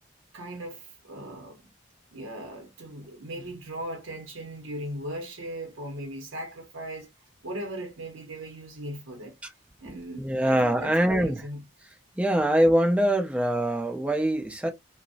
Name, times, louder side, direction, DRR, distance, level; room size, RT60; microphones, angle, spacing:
voice 1, 0.3-1.6 2.1-9.4 9.8-11.6, right 1 dB, 65° right, 0.7 m, -38 dB
voice 2, 10.2-11.4 12.2-14.7, right 1 dB, 5° right, 0.4 m, -23 dB
2.6 x 2.0 x 2.3 m
head